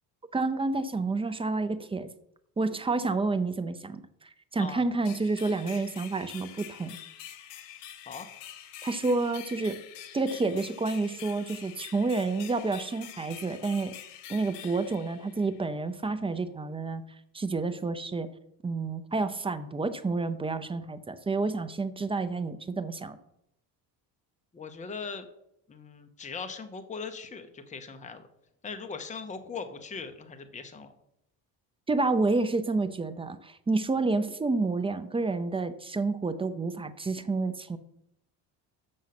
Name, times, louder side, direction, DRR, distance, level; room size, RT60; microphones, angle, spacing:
voice 1, 0.3-2.1 2.6-7.0 8.8-9.8 10.1-13.9 14.3-17.0 17.3-18.3 18.6-23.2 31.9-37.8, right 3 dB, 15° right, 11 dB, 0.5 m, -29 dB
sound 1, 5.0-15.8, left 11 dB, 80° left, 1.2 m, -46 dB
voice 2, 24.5-25.3 25.7-28.3 28.6-30.9, left 5 dB, 15° left, 7 dB, 0.8 m, -40 dB
7.1 x 6.3 x 5.8 m, 0.78 s
cardioid pair, 120°, 41 cm